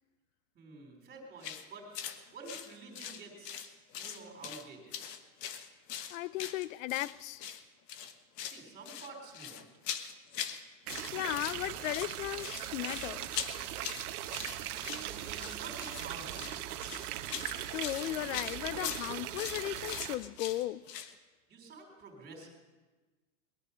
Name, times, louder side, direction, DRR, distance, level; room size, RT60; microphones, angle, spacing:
voice 1, 0.5-1.9 2.3-5.0 8.4-9.6 14.8-16.5 21.5-22.5, right 3 dB, 20° right, 3.8 m, -49 dB
sound 1, 1.4-1.6 1.9-2.2 2.5-3.7 3.9-4.6 4.9-7.1 7.4-7.6 7.9-8.6 8.9-10.6 10.9-11.6 11.9-21.1, left 9 dB, 80° left, 1.4 m, -41 dB
voice 2, 6.1-7.4 11.1-13.4 17.7-20.8, left 16 dB, 55° left, 0.5 m, -36 dB
sound 2, 10.9-20.2, right 12 dB, 65° right, 1.1 m, -39 dB
20.0 x 11.0 x 5.6 m
supercardioid pair, 155°, 48 cm